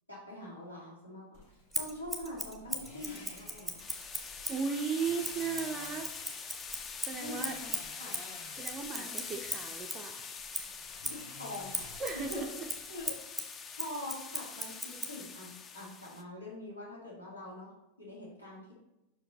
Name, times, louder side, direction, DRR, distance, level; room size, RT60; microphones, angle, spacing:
voice 1, 0.1-3.8 7.1-7.7 8.0-8.2 8.9-9.2 11.0-12.0 12.3-12.4 12.9-13.2 13.7-17.7 18.0-18.7, left 1 dB, 85° left, -5 dB, 2.1 m, -44 dB
sound 1, 1.3-13.1, left 3 dB, 50° left, 1.4 m, -53 dB
Scissors, 1.7-4.7 5.2-10.1 10.5-15.2, right 1 dB, ahead, 0.8 m, -39 dB
sound 2, 3.8-16.2, left 5 dB, 25° left, 0.5 m, -44 dB
voice 2, 4.3-6.5 7.1-7.6 8.6-10.3 12.0-12.7, right 5 dB, 25° right, 3 dB, 0.4 m, -36 dB
5.7 x 4.9 x 4.0 m, 0.93 s
figure-of-eight pair, 90°, 0 cm